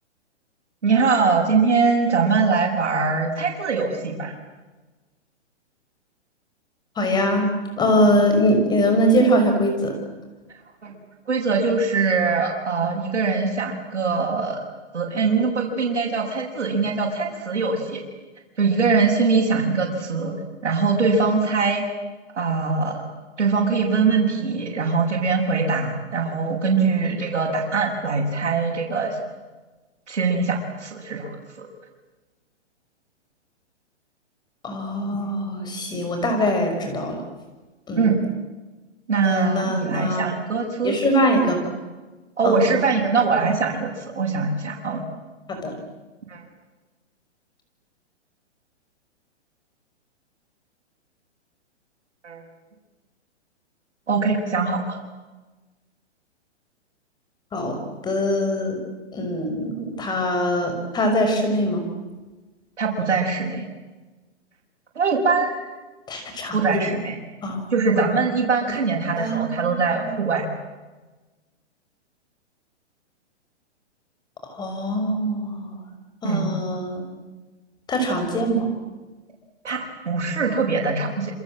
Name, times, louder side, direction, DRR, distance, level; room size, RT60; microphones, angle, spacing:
voice 1, 0.8-4.3 10.8-10.9 11.3-14.6 14.9-18.0 18.6-20.3 20.6-21.8 22.4-23.0 23.4-29.2 30.1-31.7 38.0-38.2 39.1-40.9 42.4-45.0 46.3-46.4 52.2-52.4 54.1-55.0 62.8-63.7 65.0-65.7 66.5-67.1 67.7-70.4 76.2-76.5 79.6-81.3, right 4 dB, 85° right, -5 dB, 7.3 m, -22 dB
voice 2, 7.0-9.9 34.6-37.2 37.9-38.1 39.2-40.3 40.8-41.6 42.4-42.8 45.5-45.8 57.5-58.8 59.1-61.9 66.1-66.6 67.0-67.1 67.4-67.6 69.2-70.2 74.4-75.8 76.2-77.1 77.9-78.7, equal, 10° left, 4 dB, 5.6 m, -23 dB
28.5 x 26.5 x 7.7 m, 1.2 s
hypercardioid pair, 150°, 35 cm